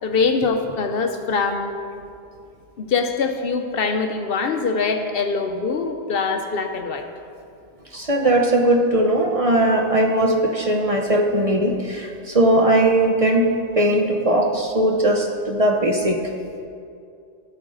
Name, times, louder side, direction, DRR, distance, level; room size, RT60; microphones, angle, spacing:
voice 1, 0.0-1.7 2.8-7.1, left 4 dB, 65° left, 6 dB, 0.8 m, -23 dB
voice 2, 7.9-13.5 13.8-16.2, right 1 dB, 35° right, 2 dB, 0.7 m, -19 dB
12.0 x 8.8 x 3.9 m, 2.4 s
omnidirectional pair, 1.1 m